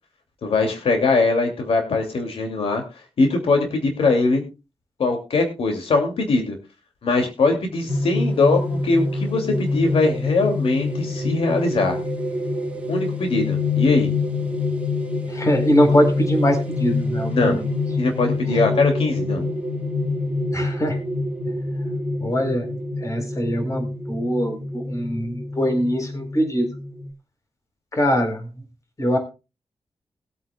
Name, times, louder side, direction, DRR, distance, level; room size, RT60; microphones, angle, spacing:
voice 1, 0.4-2.8 3.2-4.4 5.0-6.6 7.0-12.0 12.9-14.1 17.3-17.6 18.0-19.5, left 3 dB, 85° left, 3 dB, 2.7 m, -21 dB
sound 1, 7.9-27.1, left 3 dB, 15° right, 2.1 m, -26 dB
voice 2, 15.3-17.6 20.5-21.0 22.2-22.7 23.0-26.7 27.9-28.4 29.0-29.2, equal, 35° left, 4 dB, 4.3 m, -22 dB
21.5 x 8.7 x 2.4 m, 0.29 s
wide cardioid pair, 115°, 9 cm